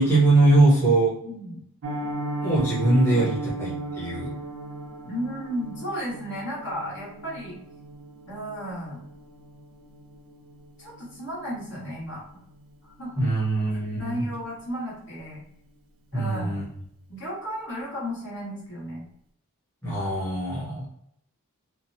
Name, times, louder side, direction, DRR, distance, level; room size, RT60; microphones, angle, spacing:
voice 1, 0.0-1.1 2.4-4.3 13.2-14.2 16.1-16.6 19.8-20.8, right 2 dB, 10° left, -10 dB, 0.8 m, -21 dB
voice 2, 1.2-1.6 5.0-7.6 8.3-9.1 10.8-12.2 12.8-13.3 13.9-15.4 16.1-16.6 17.1-19.1 20.7-20.8, equal, 55° left, -7 dB, 1.4 m, -34 dB
Piano, 1.8-12.7 13.0-13.2 13.5-13.7 14.0-14.3 14.6-14.7, right 2 dB, 65° right, 0.4 m, -37 dB
3.1 x 2.1 x 2.6 m, 0.72 s
head